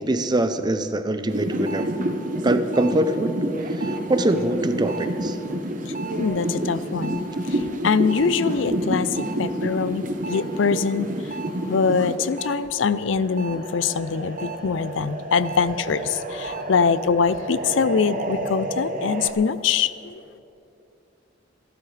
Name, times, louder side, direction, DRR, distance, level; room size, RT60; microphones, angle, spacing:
voice 1, 0.0-1.9 2.4-3.4 3.8-5.4, right 1 dB, 20° right, 9 dB, 0.6 m, -23 dB
sound 1, 1.3-12.6 12.9-19.3, right 1 dB, 45° right, 1.0 m, -29 dB
voice 2, 6.2-9.1 9.4-11.1 11.7-20.2, left 5 dB, 85° left, 15 dB, 0.5 m, -23 dB
27.0 x 13.0 x 3.3 m, 2.8 s
head